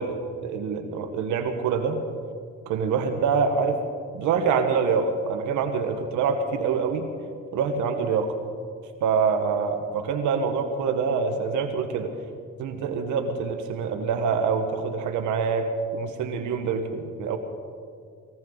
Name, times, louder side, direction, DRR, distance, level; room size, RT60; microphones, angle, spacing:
voice 1, 0.0-2.0 2.7-3.8 4.1-7.1 7.5-8.3 9.0-12.1 12.6-17.4, right 5 dB, 80° right, 6 dB, 1.5 m, -25 dB
21.5 x 16.5 x 4.0 m, 2.2 s
cardioid pair, 85°, 30 cm